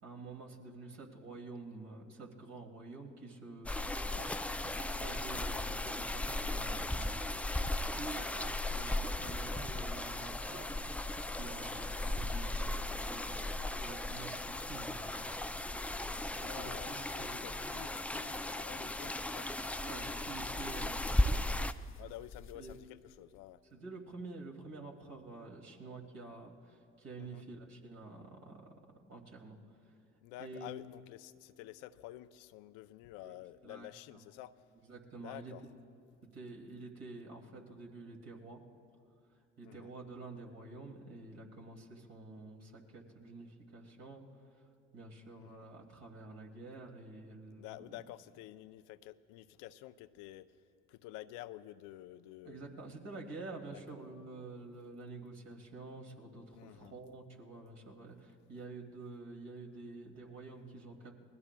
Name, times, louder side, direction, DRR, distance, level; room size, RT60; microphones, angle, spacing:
voice 1, 0.0-4.1 4.6-7.4 7.9-10.8 11.3-15.4 16.3-17.6 19.8-21.7 22.5-22.9 23.7-28.6 29.1-29.9 30.4-30.7 33.2-33.3 33.6-34.2 34.8-35.5 36.3-38.6 39.6-44.2 44.5-48.0 52.4-61.1, right 3 dB, 55° right, 1 dB, 2.4 m, -49 dB
sound 1, 3.7-21.7, left 1 dB, 5° left, 0.3 m, -36 dB
voice 2, 16.4-19.5 22.0-23.6 27.2-27.4 30.2-34.5 35.1-35.6 39.6-39.9 45.4-45.7 47.6-50.5 50.9-52.7 53.7-53.8 56.5-56.9, left 14 dB, 75° left, 13 dB, 0.5 m, -50 dB
sound 2, 18.6-23.4, left 7 dB, 40° left, 0.9 m, -56 dB
27.5 x 20.5 x 2.2 m, 2.4 s
hypercardioid pair, 65°, 31 cm